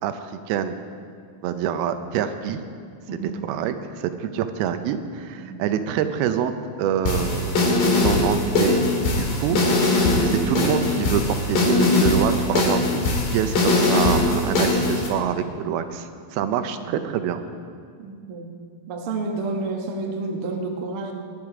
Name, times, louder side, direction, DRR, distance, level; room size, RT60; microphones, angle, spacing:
voice 1, 0.0-0.8 1.4-2.6 3.1-6.5 6.8-7.5 8.0-9.6 10.2-13.0 13.3-17.4, right 9 dB, 80° right, 9 dB, 2.6 m, -26 dB
sound 1, 7.1-15.1, left 2 dB, 65° left, 3.9 m, -21 dB
voice 2, 18.0-18.5 18.9-21.1, right 3 dB, 65° right, 2 dB, 1.4 m, -30 dB
20.5 x 11.0 x 4.9 m, 2.1 s
omnidirectional pair, 4.4 m